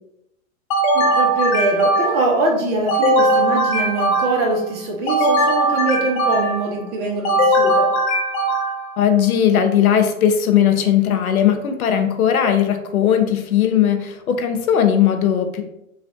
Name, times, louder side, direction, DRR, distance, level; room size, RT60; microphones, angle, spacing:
sound 1, 0.7-2.4 2.9-4.6 5.1-6.7 7.2-9.0, right 1 dB, 30° left, 0.3 m, -19 dB
voice 1, 0.9-7.9, right 2 dB, 25° right, -2 dB, 0.8 m, -22 dB
voice 2, 9.0-15.6, left 9 dB, 90° left, 7 dB, 0.6 m, -18 dB
3.2 x 2.4 x 2.5 m, 0.82 s
hypercardioid pair, 115°, 41 cm